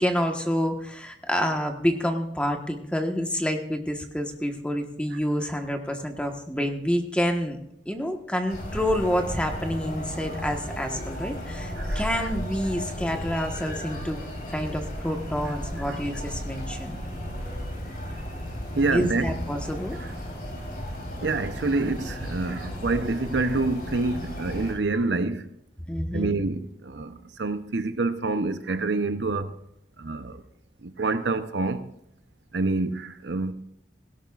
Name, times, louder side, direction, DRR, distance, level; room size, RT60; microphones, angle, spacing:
voice 1, 0.0-7.6 7.8-14.2 14.5-17.0 18.9-20.0 25.9-26.3, equal, 5° left, 1.3 m, -28 dB
sound 1, 8.5-24.7, equal, 50° left, 4.6 m, -34 dB
voice 2, 18.7-19.4 20.0-20.1 21.2-25.5 26.1-29.6 30.0-30.4 30.8-31.9 32.5-33.5, right 3 dB, 75° right, 0.8 m, -27 dB
18.0 x 17.0 x 2.5 m
head